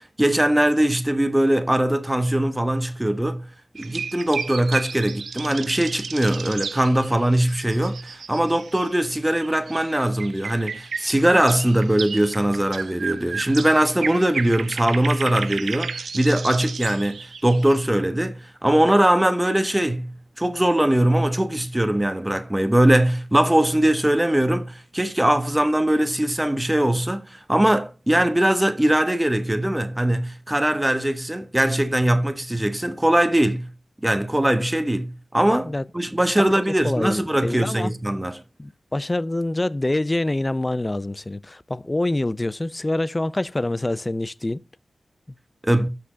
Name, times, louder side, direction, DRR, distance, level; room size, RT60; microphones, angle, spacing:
voice 1, 0.2-3.5 3.8-33.7 34.0-38.4 45.6-45.9, right 1 dB, 15° right, 1.1 m, -21 dB
sound 1, 3.8-9.0 9.3-17.7, right 5 dB, 85° right, 0.4 m, -33 dB
voice 2, 36.8-37.9 38.6-44.6 45.3-45.4, left 2 dB, 30° left, 0.5 m, -26 dB
6.0 x 6.0 x 5.1 m
cardioid pair, 45°, 0 cm